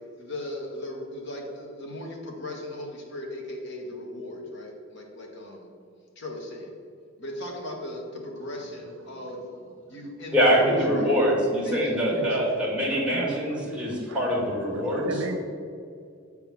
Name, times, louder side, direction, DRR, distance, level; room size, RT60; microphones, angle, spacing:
voice 1, 0.2-5.7 6.2-6.7 7.2-9.4 9.9-11.2 11.6-12.6, left 1 dB, 60° left, 0 dB, 1.3 m, -37 dB
voice 2, 10.3-15.0, equal, 5° right, -5 dB, 1.9 m, -24 dB
voice 3, 12.1-12.6 12.9-14.2 14.7-15.4, right 2 dB, 70° right, 5 dB, 0.7 m, -35 dB
7.8 x 3.7 x 6.0 m, 2.3 s
head